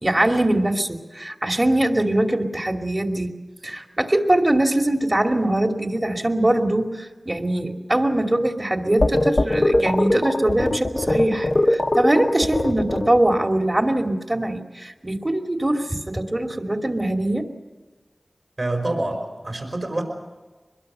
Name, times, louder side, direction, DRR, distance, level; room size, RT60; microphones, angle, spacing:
voice 1, 0.0-3.3 3.6-17.5, right 1 dB, 35° right, 3 dB, 2.6 m, -22 dB
sound 1, 9.0-13.4, left 1 dB, 50° left, 1.3 m, -21 dB
voice 2, 18.6-20.0, right 2 dB, 55° right, 4 dB, 5.1 m, -26 dB
24.0 x 21.5 x 6.9 m, 1.2 s
wide cardioid pair, 45°, 0 cm